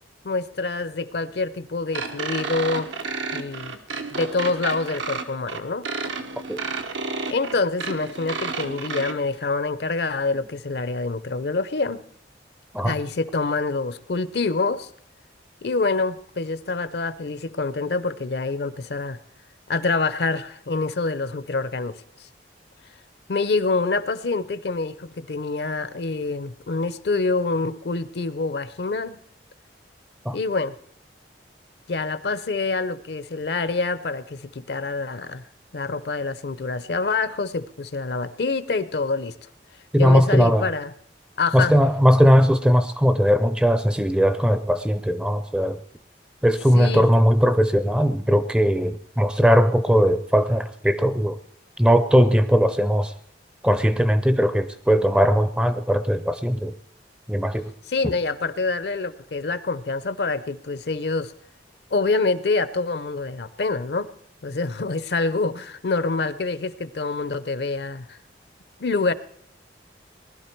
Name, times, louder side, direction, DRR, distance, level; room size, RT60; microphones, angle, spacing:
voice 1, 0.2-2.9 3.3-3.7 4.1-5.9 7.3-12.0 12.8-14.9 15.6-19.2 19.7-22.0 23.3-29.2 30.3-30.7 31.9-35.4 35.7-39.3 40.0-40.9 41.4-41.7 46.7-47.1 57.9-61.3 61.9-64.1 64.4-68.2 68.8-69.1, left 3 dB, 60° left, 16 dB, 0.6 m, -26 dB
sound 1, 1.9-9.1, right 4 dB, 90° right, 1.2 m, -31 dB
voice 2, 39.9-40.7 41.5-45.8 46.4-51.4 51.8-53.1 53.6-56.7 57.3-57.7 58.0-58.1, equal, 5° right, 11 dB, 0.5 m, -19 dB
19.5 x 11.5 x 4.5 m, 0.65 s
head